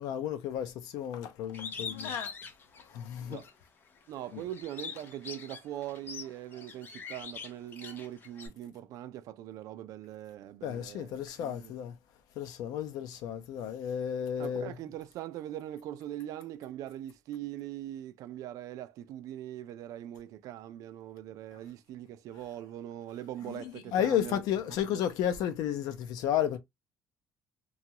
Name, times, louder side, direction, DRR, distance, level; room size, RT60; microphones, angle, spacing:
voice 1, 0.0-2.3 2.9-3.4 4.3-4.4 10.6-12.0 12.4-14.7 23.4-26.6, left 10 dB, 75° left, 0.6 m, -32 dB
Bird, 1.5-3.5 4.0-8.5, left 5 dB, 30° left, 0.6 m, -43 dB
voice 2, 4.1-11.6 14.4-24.4, right 12 dB, 60° right, 0.3 m, -41 dB
2.9 x 2.3 x 2.8 m
cardioid pair, 165°, 7 cm